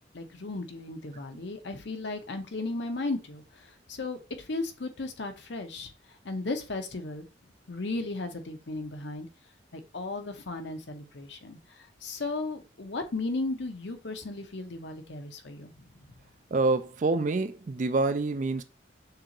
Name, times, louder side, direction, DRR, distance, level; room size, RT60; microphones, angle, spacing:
voice 1, 0.0-5.9 6.2-7.3 7.7-9.3 9.7-15.8, left 2 dB, 70° left, 0.8 m, -35 dB
voice 2, 16.5-18.6, right 3 dB, 40° right, 0.4 m, -26 dB
6.6 x 2.5 x 2.9 m
head